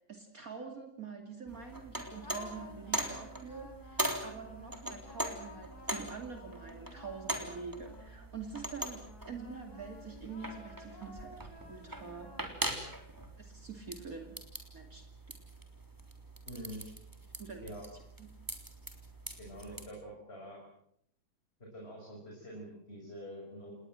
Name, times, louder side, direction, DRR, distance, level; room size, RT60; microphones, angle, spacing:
voice 1, 0.0-12.3 13.4-14.4 14.7-15.1 17.2-17.7 18.2-18.3, right 5 dB, 45° right, 4 dB, 2.9 m, -46 dB
sound 1, 1.5-19.9, right 1 dB, 10° right, 3.4 m, -42 dB
sound 2, 2.2-8.5 9.0-13.0, left 2 dB, 50° left, 4.8 m, -53 dB
voice 2, 16.5-16.8 17.6-17.8 19.4-20.6 21.7-23.7, equal, 30° left, -1 dB, 6.1 m, -46 dB
29.5 x 19.5 x 7.7 m, 0.74 s
omnidirectional pair, 2.1 m